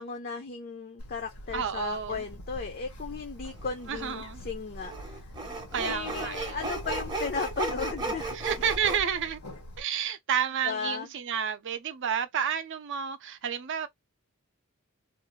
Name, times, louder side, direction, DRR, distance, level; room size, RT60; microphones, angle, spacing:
voice 1, 0.0-5.3 5.8-8.4 10.6-11.1, left 5 dB, 45° left, 0.4 m, -35 dB
Bird, 1.0-9.8, equal, 85° left, 0.9 m, -43 dB
voice 2, 1.5-2.2 3.9-4.4 5.7-6.7 8.3-9.4 9.8-13.9, right 8 dB, 55° right, 0.5 m, -30 dB
Sawing, 3.6-3.7 4.8-9.0, right 3 dB, 20° right, 0.7 m, -34 dB
2.5 x 2.3 x 3.0 m
head